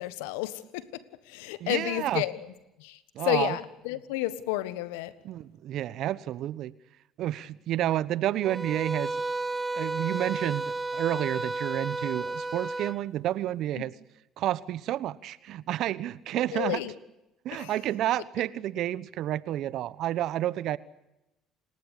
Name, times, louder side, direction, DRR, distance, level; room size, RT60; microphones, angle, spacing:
voice 1, 0.0-2.5 2.8-5.1 13.8-13.9 16.5-16.9 17.5-17.8, left 16 dB, 80° left, 1.5 m, -31 dB
voice 2, 1.6-2.2 3.1-3.6 5.2-6.7 7.2-9.2 9.7-13.9 14.4-16.8 17.4-20.8, right 13 dB, 65° right, 1.1 m, -30 dB
sound 1, 8.4-13.0, right 3 dB, 15° right, 2.0 m, -32 dB
29.0 x 19.5 x 8.4 m
hypercardioid pair, 65°, 0 cm